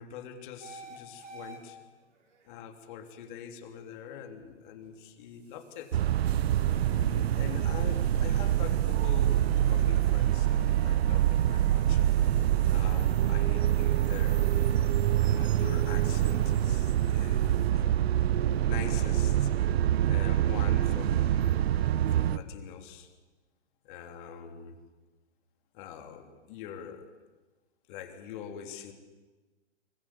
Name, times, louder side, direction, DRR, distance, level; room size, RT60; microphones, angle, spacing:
voice 1, 0.0-1.8 2.4-6.1 6.6-12.0 12.7-14.6 15.2-17.9 18.7-19.5 20.1-23.1 23.8-24.8 25.7-27.2 27.9-28.9, left 8 dB, 40° left, 6 dB, 3.4 m, -44 dB
sound 1, 0.6-17.7, right 3 dB, 80° right, 7.2 m, -55 dB
sound 2, 5.9-22.4, right 11 dB, 55° right, 1.0 m, -25 dB
25.0 x 21.0 x 8.6 m, 1.3 s
hypercardioid pair, 125°, 36 cm